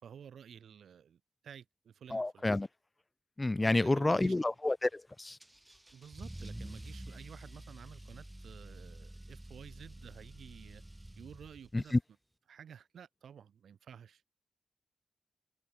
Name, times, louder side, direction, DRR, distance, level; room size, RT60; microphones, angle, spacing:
voice 1, 0.0-2.4 3.6-4.5 5.9-10.8 11.2-11.9 12.5-14.2, right 8 dB, 85° right, 2.9 m, -52 dB
voice 2, 2.1-2.7 3.4-5.4 11.7-12.0, left 2 dB, 25° left, 0.4 m, -29 dB
Car / Engine starting / Accelerating revving vroom, 5.4-11.9, right 1 dB, 15° right, 2.6 m, -48 dB
cardioid pair, 60°, 0 cm